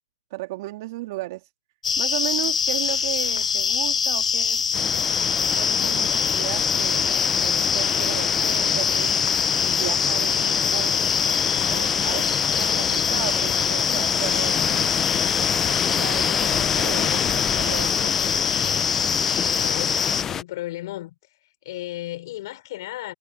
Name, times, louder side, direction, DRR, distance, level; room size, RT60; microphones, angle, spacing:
voice 1, 0.3-1.5 2.0-4.6 5.5-9.1 9.7-11.0 11.7-14.9 15.6-18.2, right 19 dB, 35° right, 2.4 m, -34 dB
sound 1, 1.8-20.2, left 6 dB, 90° left, 0.4 m, -23 dB
sound 2, 4.7-20.4, left 8 dB, 10° left, 0.5 m, -29 dB
voice 2, 19.2-21.2 21.6-23.1, left 16 dB, 35° left, 5.8 m, -35 dB
hypercardioid pair, 160°, 3 cm